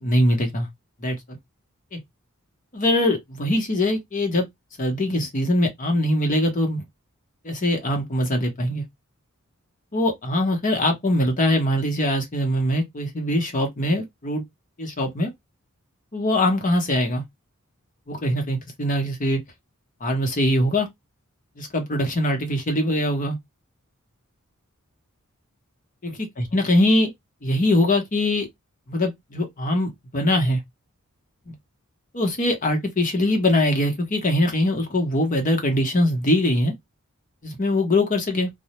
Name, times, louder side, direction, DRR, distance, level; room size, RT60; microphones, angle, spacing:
voice 1, 0.0-0.7 1.0-1.2 1.9-2.0 2.7-4.4 4.8-6.8 7.4-8.8 9.9-14.4 14.8-15.3 16.1-17.2 18.1-19.4 20.0-20.9 21.6-23.4 26.0-27.1 27.4-28.5 28.9-30.6 31.5-31.6 32.1-36.7 37.4-38.5, left 1 dB, 40° left, 0.9 m, -22 dB
2.3 x 2.1 x 2.9 m
head